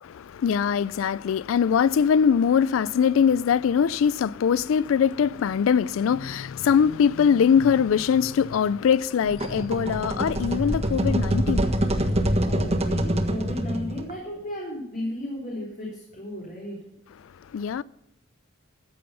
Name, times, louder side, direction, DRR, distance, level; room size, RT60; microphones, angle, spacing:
voice 1, 0.0-11.9 17.5-17.8, left 7 dB, 75° left, 0.3 m, -22 dB
sound 1, 9.2-14.1, right 1 dB, 30° right, 1.4 m, -25 dB
voice 2, 12.4-16.8, left 1 dB, 40° left, 3.5 m, -34 dB
14.0 x 8.7 x 5.6 m
head